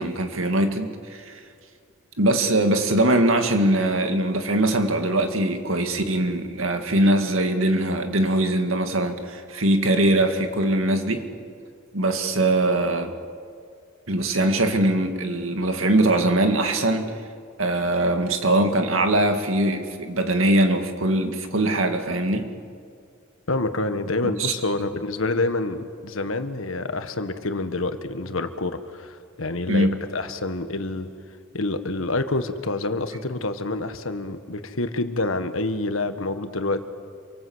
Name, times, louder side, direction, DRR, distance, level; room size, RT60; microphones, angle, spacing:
voice 1, 0.0-1.4 2.2-11.3 11.9-13.1 14.1-17.1 17.6-22.5 24.4-24.5 29.7-30.0, right 1 dB, 80° right, 6 dB, 2.1 m, -22 dB
voice 2, 23.5-31.1 31.5-36.8, left 2 dB, 80° left, 9 dB, 1.5 m, -27 dB
27.5 x 24.0 x 8.0 m, 2.2 s
head